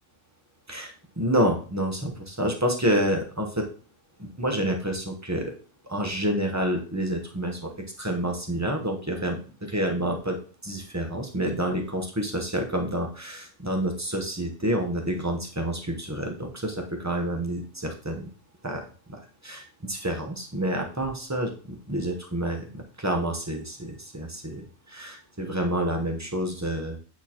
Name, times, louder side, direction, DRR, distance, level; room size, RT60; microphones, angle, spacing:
voice 1, 0.7-3.7 4.2-5.5 5.9-7.7 8.0-18.3 18.6-27.0, right 1 dB, 15° right, 2 dB, 0.7 m, -28 dB
8.7 x 4.0 x 2.9 m, 0.38 s
omnidirectional pair, 1.3 m